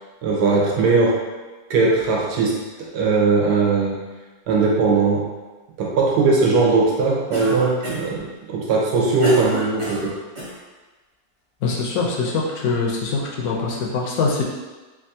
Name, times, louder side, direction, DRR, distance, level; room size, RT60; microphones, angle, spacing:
voice 1, 0.2-1.2 1.7-4.1 4.5-5.3 5.8-10.2, right 3 dB, 90° right, -2 dB, 1.3 m, -19 dB
Cough, 7.3-8.2 8.8-10.6, right 1 dB, 50° right, 0.3 m, -29 dB
voice 2, 11.6-14.4, left 4 dB, 70° left, -2 dB, 1.0 m, -23 dB
3.4 x 2.3 x 2.6 m, 1.2 s
omnidirectional pair, 1.7 m